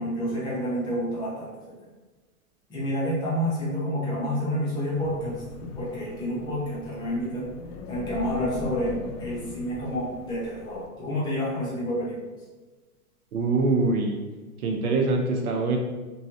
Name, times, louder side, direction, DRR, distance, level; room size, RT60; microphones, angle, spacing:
voice 1, 0.0-1.5 2.7-5.4 5.8-7.5 7.9-12.2, equal, 10° left, -7 dB, 0.6 m, -29 dB
Wind, 4.9-10.9, left 3 dB, 60° left, 0.5 m, -39 dB
voice 2, 13.3-14.2 14.6-15.8, right 3 dB, 70° right, 1 dB, 0.6 m, -24 dB
3.0 x 2.7 x 2.4 m, 1.3 s
hypercardioid pair, 130°, 45 cm